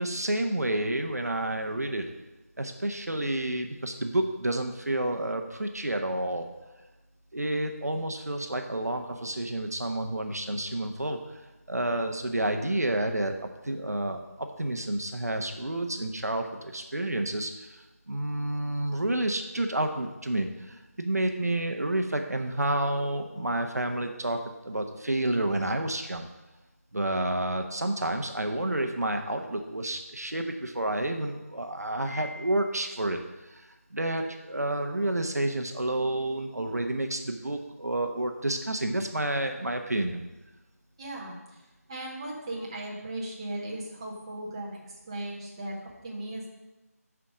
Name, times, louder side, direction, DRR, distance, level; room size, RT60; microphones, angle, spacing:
voice 1, 0.0-2.1 2.6-6.5 7.3-26.3 26.9-33.2 33.5-40.2, right 1 dB, 75° right, 5 dB, 1.1 m, -30 dB
Piano, 32.1-33.1, left 3 dB, 5° left, 0.5 m, -45 dB
voice 2, 41.0-46.5, right 1 dB, 20° right, -3 dB, 1.3 m, -37 dB
10.5 x 5.0 x 5.0 m, 1.1 s
figure-of-eight pair, 165°, 9 cm